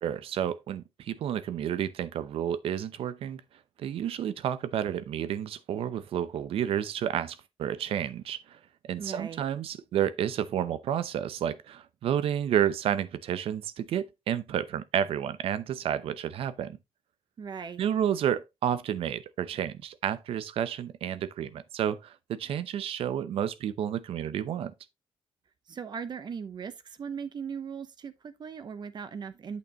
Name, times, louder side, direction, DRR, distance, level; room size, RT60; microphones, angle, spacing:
voice 1, 0.0-3.4 3.8-8.6 8.9-16.8 17.8-24.7, right 9 dB, 85° right, 0.7 m, -30 dB
voice 2, 9.0-9.4 17.4-17.8 25.7-29.6, right 6 dB, 50° right, 0.8 m, -38 dB
8.3 x 6.8 x 2.9 m
cardioid pair, 110°, 9 cm